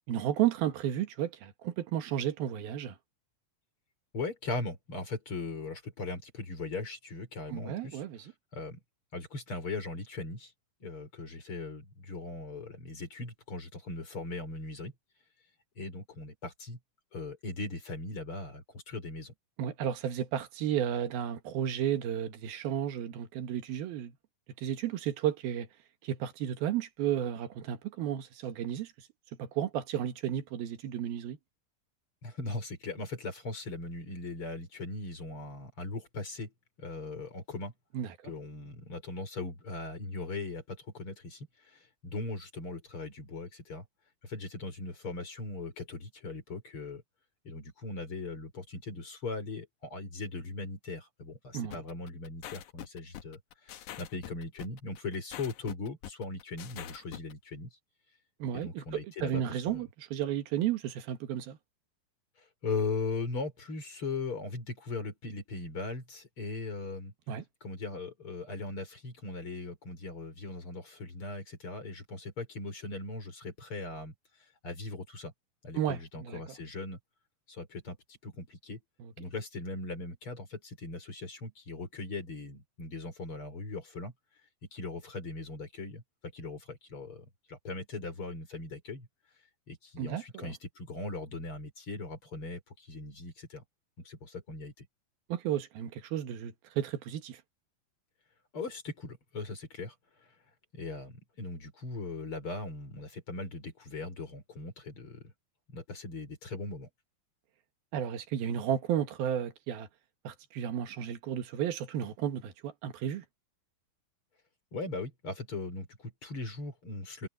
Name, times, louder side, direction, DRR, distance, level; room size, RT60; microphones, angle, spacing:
voice 1, 0.1-2.9 7.5-8.3 19.6-24.1 24.6-25.7 26.0-28.9 29.4-31.4 37.9-38.1 51.5-51.8 58.4-61.6 67.3-67.4 75.7-76.4 79.0-79.1 90.0-90.5 95.3-97.4 107.9-109.9 110.2-113.2, right 10 dB, 90° right, 3.4 m, -33 dB
voice 2, 4.1-8.0 8.5-8.8 9.1-10.5 10.8-14.9 15.8-16.8 17.1-19.3 32.2-36.5 36.8-37.7 38.2-43.8 44.2-47.0 47.4-53.4 53.6-57.7 58.5-59.9 62.6-67.1 67.6-74.1 74.6-75.3 75.6-77.0 77.5-78.8 79.2-84.1 84.7-86.0 86.3-89.1 89.7-93.6 94.0-94.8 98.5-99.9 100.7-105.3 105.7-106.9 114.7-117.3, left 3 dB, 35° left, 5.1 m, -39 dB
sound 1, 51.7-57.3, left 11 dB, 65° left, 2.2 m, -44 dB
omnidirectional pair, 4.2 m